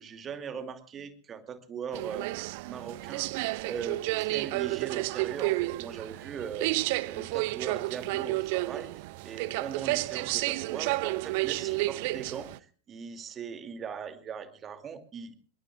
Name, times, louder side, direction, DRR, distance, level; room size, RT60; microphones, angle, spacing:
voice 1, 0.0-15.4, right 7 dB, 25° right, 9 dB, 2.5 m, -40 dB
sound 1, 1.9-12.6, right 20 dB, 50° right, 0.7 m, -31 dB
27.5 x 22.0 x 2.4 m, 0.40 s
figure-of-eight pair, 90°, 0 cm